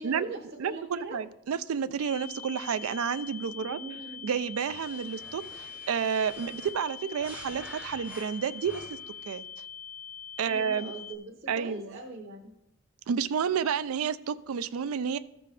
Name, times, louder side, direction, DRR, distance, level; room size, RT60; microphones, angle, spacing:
voice 1, 0.0-1.2 3.5-4.3 10.5-12.5, right 2 dB, 50° right, -3 dB, 0.9 m, -42 dB
voice 2, 0.6-3.8 4.2-9.0 9.3-9.4 10.4-10.9 11.5-11.9 13.1-15.2, right 7 dB, 90° right, 14 dB, 0.4 m, -30 dB
sound 1, 2.0-11.2, left 8 dB, 40° left, 0.5 m, -43 dB
sound 2, 4.7-9.2, right 1 dB, 5° right, 0.6 m, -49 dB
14.0 x 5.3 x 3.3 m, 0.83 s
head